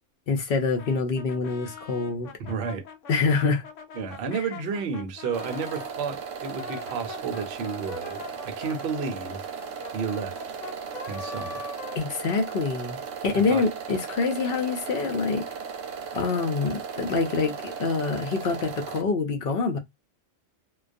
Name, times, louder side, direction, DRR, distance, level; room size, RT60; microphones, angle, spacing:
voice 1, 0.3-2.3 3.1-3.6 4.3-4.5 11.9-15.4 16.1-19.8, left 4 dB, 60° left, 0.7 m, -26 dB
Brass instrument, 0.8-5.9 6.4-12.7, left 4 dB, 85° left, 0.9 m, -43 dB
voice 2, 2.4-2.8 3.9-9.5 9.9-10.4 11.1-11.7 13.5-13.7, right 5 dB, 60° right, 0.8 m, -32 dB
sound 1, 5.3-19.0, right 6 dB, 80° right, 1.0 m, -37 dB
2.3 x 2.2 x 2.5 m
omnidirectional pair, 1.3 m